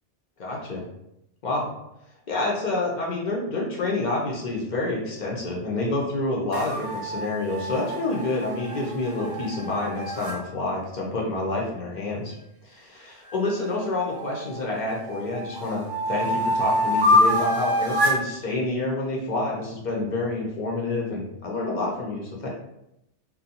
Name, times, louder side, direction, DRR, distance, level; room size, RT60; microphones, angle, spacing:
voice 1, 0.4-0.9 1.4-1.7 2.3-12.3 12.6-22.5, left 2 dB, 55° left, -2 dB, 0.5 m, -28 dB
sound 1, 6.5-10.4 13.3-14.6 15.1-18.3, left 1 dB, 50° right, 0.7 m, -26 dB
2.5 x 2.1 x 2.7 m, 0.84 s
omnidirectional pair, 1.2 m